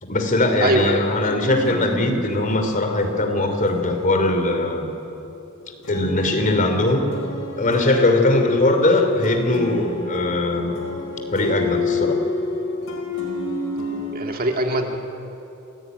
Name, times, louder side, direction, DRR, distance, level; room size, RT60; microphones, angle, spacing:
voice 1, 0.0-4.9 5.9-7.1 7.6-10.7 11.3-12.2, left 2 dB, 40° left, 5 dB, 3.1 m, -20 dB
voice 2, 0.6-1.0 14.1-15.0, right 1 dB, 45° right, 3 dB, 1.9 m, -22 dB
sound 1, 1.2-5.3 5.8-14.2, left 3 dB, 75° left, 4.9 m, -29 dB
28.5 x 16.5 x 9.3 m, 3.0 s
head